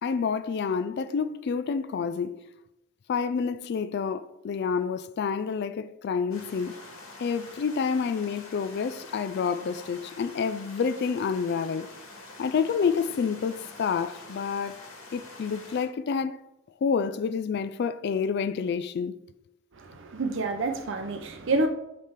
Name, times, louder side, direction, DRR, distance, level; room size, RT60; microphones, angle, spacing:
voice 1, 0.0-2.4 3.1-6.8 7.2-11.9 12.4-14.8 15.1-16.4 16.8-19.2, left 6 dB, 55° left, 0.3 m, -28 dB
sound 1, 6.3-15.9, left 2 dB, 90° left, 1.8 m, -46 dB
voice 2, 19.7-21.7, right 2 dB, 65° right, 0.7 m, -28 dB
8.7 x 3.3 x 5.7 m
head